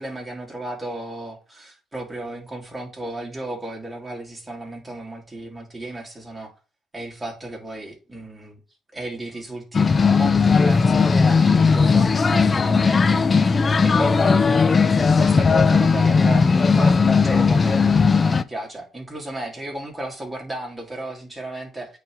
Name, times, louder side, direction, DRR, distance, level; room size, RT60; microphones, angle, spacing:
voice 1, 0.0-6.5 6.9-8.6 8.9-13.5 13.8-22.0, right 1 dB, 15° right, 2.6 m, -34 dB
sound 1, 9.7-18.4, left 5 dB, 35° left, 0.4 m, -17 dB
8.8 x 3.2 x 3.6 m
supercardioid pair, 75°, 0 cm